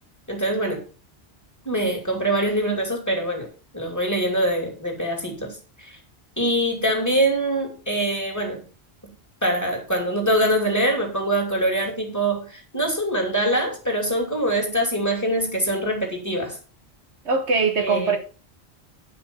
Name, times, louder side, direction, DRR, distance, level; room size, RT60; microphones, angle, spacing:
voice 1, 0.3-0.9 1.6-3.5 3.7-5.9 6.4-8.6 9.4-16.6 17.8-18.2, right 1 dB, 15° left, 2.8 m, -24 dB
voice 2, 17.2-18.2, right 4 dB, 90° right, 1.6 m, -21 dB
9.9 x 5.9 x 5.4 m
omnidirectional pair, 1.1 m